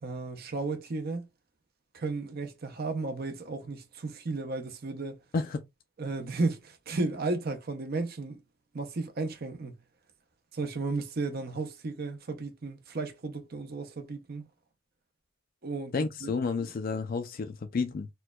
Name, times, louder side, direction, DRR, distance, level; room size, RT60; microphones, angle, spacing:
voice 1, 0.0-1.3 1.9-5.2 6.0-8.4 8.7-9.8 10.5-14.5 15.6-16.3, right 3 dB, 45° right, 0.6 m, -34 dB
voice 2, 15.9-18.1, left 4 dB, 40° left, 0.3 m, -31 dB
4.4 x 2.2 x 2.2 m
head